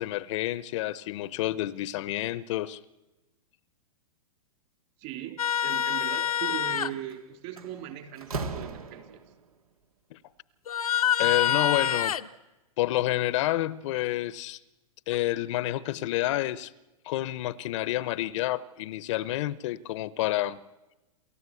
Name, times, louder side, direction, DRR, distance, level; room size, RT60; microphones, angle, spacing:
voice 1, 0.0-2.8 10.1-10.2 11.2-12.1 12.8-14.6 15.1-16.7 17.0-20.6, left 15 dB, 55° left, 0.8 m, -29 dB
voice 2, 5.0-9.2, right 11 dB, 45° right, 3.3 m, -39 dB
sound 1, 5.4-6.9 10.7-12.3 15.1-15.2, left 9 dB, 85° left, 0.9 m, -26 dB
Slam, 6.9-7.1 7.6-9.4, right 3 dB, 85° right, 1.9 m, -37 dB
28.0 x 14.0 x 8.4 m
hypercardioid pair, 115°, 18 cm